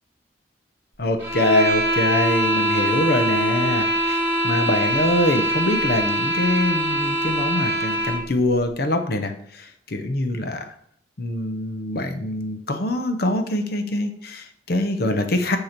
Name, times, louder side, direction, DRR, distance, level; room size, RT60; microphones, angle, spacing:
voice 1, 1.0-10.7 11.2-15.6, left 1 dB, 55° left, 7 dB, 0.7 m, -24 dB
sound 1, 1.2-8.3, right 1 dB, 10° right, 2.2 m, -23 dB
6.5 x 3.0 x 5.8 m, 0.67 s
head